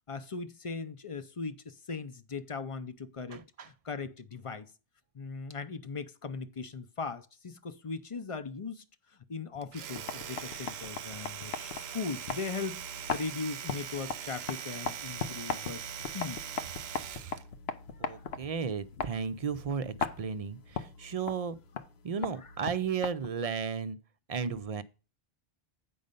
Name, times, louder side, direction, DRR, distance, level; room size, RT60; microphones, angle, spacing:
voice 1, 0.1-4.7 5.1-8.8 9.3-12.8 13.1-15.8 16.1-16.4 18.0-18.2, left 4 dB, 40° left, 0.6 m, -39 dB
voice 2, 3.3-3.7 18.0-21.6 22.0-24.0 24.3-24.8, right 6 dB, 45° right, 0.5 m, -34 dB
Domestic sounds home sounds, 9.6-17.5, right 9 dB, 90° right, 0.8 m, -41 dB
sound 1, 9.8-23.5, left 5 dB, 85° left, 1.0 m, -40 dB
8.6 x 5.3 x 5.3 m
omnidirectional pair, 1.0 m